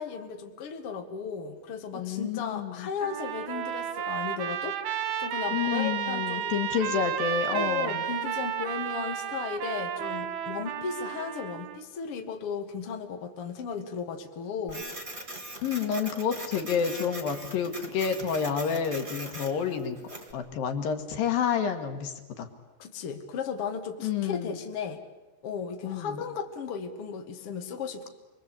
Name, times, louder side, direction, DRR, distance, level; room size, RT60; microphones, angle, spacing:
voice 1, 0.0-4.8 5.2-6.5 7.5-14.8 22.8-25.0 25.4-28.1, left 6 dB, 90° left, 4 dB, 1.2 m, -35 dB
voice 2, 1.9-2.9 5.5-8.0 15.6-20.0 20.3-22.5 24.0-24.6 25.8-26.2, left 7 dB, 60° left, 6 dB, 2.7 m, -29 dB
Trumpet, 3.0-11.8, right 9 dB, 70° right, 2.5 m, -32 dB
Printer, 14.7-20.3, right 1 dB, 15° right, 1.7 m, -41 dB
29.0 x 23.0 x 8.4 m, 1.1 s
omnidirectional pair, 5.9 m